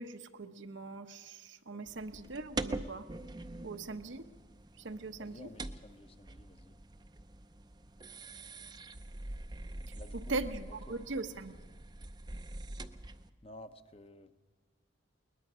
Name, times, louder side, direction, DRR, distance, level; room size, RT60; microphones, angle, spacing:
voice 1, 0.0-3.1 3.6-4.2 4.8-5.5 9.9-11.6, right 3 dB, 70° right, 7 dB, 0.9 m, -40 dB
sound 1, 1.9-13.3, right 2 dB, 20° right, 0.5 m, -44 dB
voice 2, 5.2-6.8 9.9-10.4 10.9-11.1 13.4-14.3, left 1 dB, 30° left, 10 dB, 0.8 m, -53 dB
21.5 x 20.0 x 6.1 m, 1.4 s
head